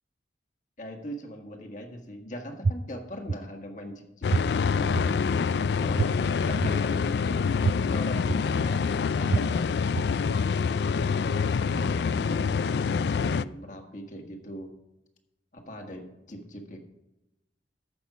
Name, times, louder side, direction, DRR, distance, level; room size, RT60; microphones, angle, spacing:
voice 1, 0.8-5.2 5.8-7.1 7.9-9.6 11.2-12.7 13.2-14.7 15.5-16.8, equal, 45° left, 3 dB, 1.7 m, -40 dB
sound 1, 2.6-2.7 3.3-3.4 4.3-4.4 4.9-5.0 6.0-6.1 6.6-6.7 7.6-7.7 8.3-8.4 9.3-9.4 9.9-10.0, right 4 dB, 35° right, 0.3 m, -23 dB
sound 2, 4.2-13.4, left 5 dB, 65° left, 0.3 m, -26 dB
14.0 x 6.3 x 4.9 m, 0.95 s
head